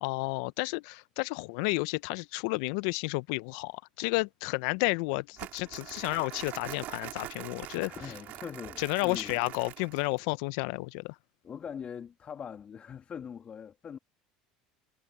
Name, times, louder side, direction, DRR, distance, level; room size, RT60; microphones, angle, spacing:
voice 1, 0.0-7.9 8.8-11.2, left 25 dB, 70° left, 0.6 m, -31 dB
Crumpling crinkling, 5.4-10.2, right 14 dB, 55° right, 4.4 m, -44 dB
voice 2, 7.8-9.4 11.4-14.0, left 7 dB, 35° left, 2.6 m, -42 dB
hypercardioid pair, 80°, 3 cm